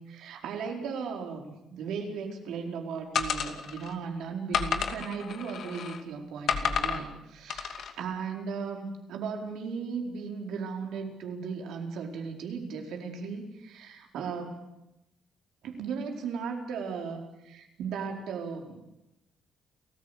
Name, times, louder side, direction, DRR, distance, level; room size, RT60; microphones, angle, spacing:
voice 1, 0.1-14.6 15.6-18.8, right 5 dB, 80° right, 2 dB, 4.6 m, -36 dB
sound 1, 3.1-3.9 4.5-6.0 6.5-7.0 7.5-7.9, left 6 dB, 65° left, 2.5 m, -31 dB
30.0 x 14.5 x 8.3 m, 0.90 s
cardioid pair, 90°, 0 cm